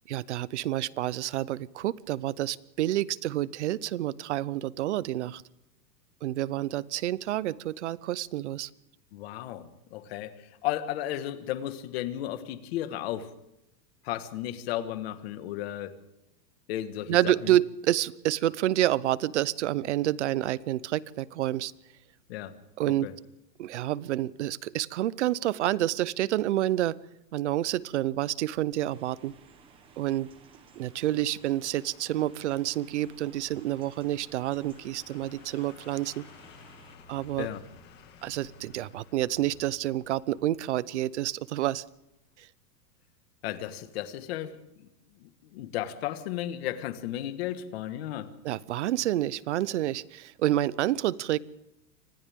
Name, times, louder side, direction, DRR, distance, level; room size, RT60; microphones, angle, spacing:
voice 1, 0.1-5.4 6.2-8.7 17.1-21.7 22.8-23.1 23.6-27.0 27.3-29.3 30.0-30.3 30.8-36.3 37.1-37.5 38.2-41.8 48.4-51.4, right 14 dB, 45° right, 20 dB, 0.7 m, -28 dB
voice 2, 9.1-13.3 14.0-15.9 16.7-17.5 22.3-22.5 22.9-23.1 37.4-37.6 43.4-44.6 45.2-48.3, left 12 dB, 40° left, 10 dB, 1.7 m, -34 dB
sound 1, 27.6-42.4 42.7-42.8, left 5 dB, 20° left, 1.9 m, -57 dB
sound 2, 28.9-37.0, right 6 dB, 10° right, 1.0 m, -57 dB
28.5 x 26.0 x 3.7 m, 0.85 s
supercardioid pair, 175°, 50 cm